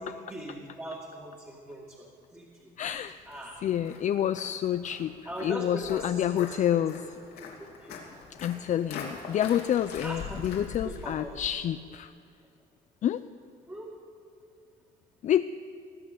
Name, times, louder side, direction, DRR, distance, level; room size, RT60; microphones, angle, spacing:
voice 1, 0.0-2.4 3.3-3.6 5.3-6.5 6.7-6.8 7.4-7.5 7.8-8.0 10.0-10.4 10.8-11.4 13.7-13.9, right 1 dB, 15° right, -4 dB, 2.2 m, -40 dB
voice 2, 2.8-3.2 3.6-5.1 5.4-7.1 8.4-12.1 13.0-13.2 15.2-15.5, left 10 dB, 45° left, 12 dB, 0.5 m, -28 dB
Walk footsteps, 2.9-11.5, left 5 dB, 75° left, 2.9 m, -44 dB
19.5 x 8.5 x 8.2 m, 2.4 s
cardioid pair, 110°, 17 cm